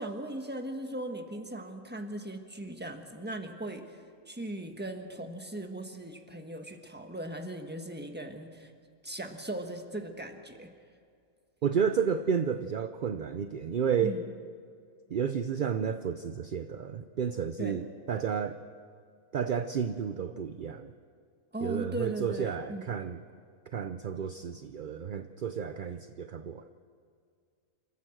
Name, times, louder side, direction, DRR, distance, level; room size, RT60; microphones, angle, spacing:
voice 1, 0.0-4.0 4.3-8.7 9.0-10.7 14.0-14.2 17.6-17.8 21.5-22.8, right 1 dB, 5° right, 5 dB, 1.3 m, -38 dB
voice 2, 11.6-14.2 15.1-18.6 19.3-20.9 21.6-23.2 23.7-26.7, right 7 dB, 55° right, 9 dB, 0.6 m, -31 dB
27.5 x 13.5 x 7.8 m, 2.2 s
omnidirectional pair, 1.5 m